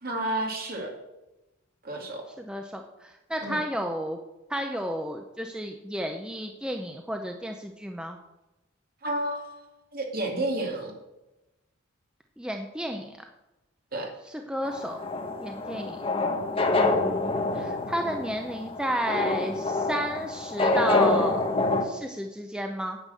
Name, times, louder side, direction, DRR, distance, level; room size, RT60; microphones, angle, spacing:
voice 1, 0.0-0.9 1.8-2.2 3.4-3.6 9.0-9.6 9.9-10.9 13.9-14.1, right 1 dB, 45° right, 2 dB, 2.3 m, -30 dB
voice 2, 2.4-4.2 4.5-8.2 12.4-13.2 14.3-15.0 15.4-16.0 16.7-21.5 21.8-23.0, equal, 5° right, 4 dB, 0.6 m, -32 dB
sound 1, 14.6-21.8, left 2 dB, 25° left, 1.1 m, -26 dB
9.9 x 8.0 x 6.8 m, 0.99 s
head